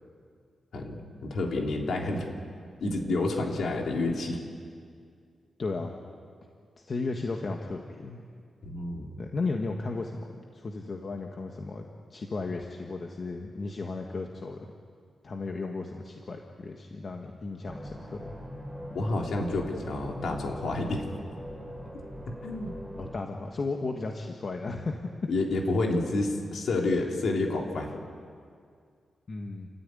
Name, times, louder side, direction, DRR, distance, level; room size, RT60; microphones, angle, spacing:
voice 1, 0.7-2.3 2.8-4.4 8.6-9.1 18.9-21.1 22.4-22.7 25.3-28.0, left 2 dB, 70° left, 1 dB, 3.4 m, -29 dB
voice 2, 5.6-5.9 6.8-8.2 9.2-11.8 12.1-14.7 15.2-18.3 23.0-25.1 29.3-29.7, left 3 dB, 40° left, 2 dB, 1.6 m, -35 dB
sound 1, 17.7-23.2, equal, 5° left, 3.9 m, -41 dB
29.5 x 14.5 x 9.8 m, 2.2 s
wide cardioid pair, 135°, 0 cm